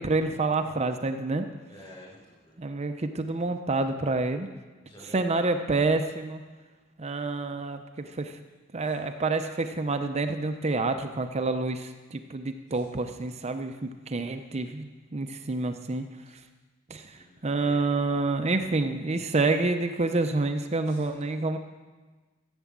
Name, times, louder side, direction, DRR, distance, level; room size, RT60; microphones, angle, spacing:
voice 1, 0.0-1.5 2.6-4.5 5.1-6.4 7.0-8.3 8.7-16.0 16.9-17.0 17.4-21.6, right 3 dB, 30° right, 7 dB, 0.6 m, -28 dB
voice 2, 1.7-2.5 4.8-5.5 8.8-9.0 12.7-12.9 17.1-17.9 20.9-21.1, left 1 dB, 25° left, -4 dB, 5.6 m, -50 dB
14.0 x 8.1 x 7.4 m, 1.3 s
head